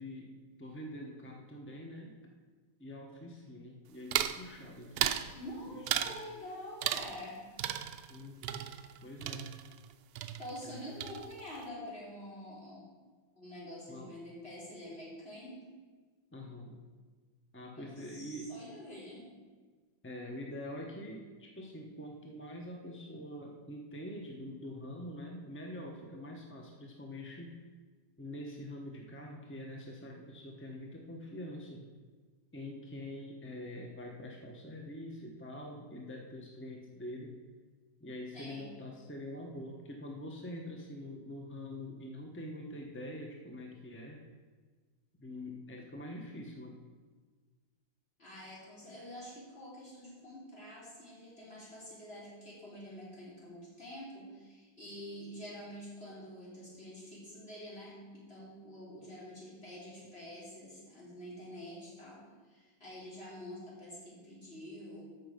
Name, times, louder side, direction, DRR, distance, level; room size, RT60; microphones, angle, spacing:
voice 1, 0.0-2.1 2.8-5.4 5.7-6.2 8.1-8.7 9.0-9.5 10.6-10.9 13.9-14.2 16.3-16.8 17.5-18.5 20.0-27.5 28.2-31.9 32.5-37.3 38.0-44.2 45.2-46.8, left 1 dB, 10° left, 1 dB, 0.5 m, -45 dB
sound 1, 4.1-4.4 5.0-5.3 5.9-6.2 6.8-7.3 7.6-9.9 10.2-10.7 11.0-11.6, right 11 dB, 85° right, 0.8 m, -35 dB
voice 2, 5.3-7.4 10.4-12.8 13.4-15.6 17.7-19.3 38.3-38.7 48.2-65.0, left 1 dB, 30° left, -7 dB, 3.9 m, -47 dB
14.0 x 6.2 x 5.2 m, 1.4 s
omnidirectional pair, 2.1 m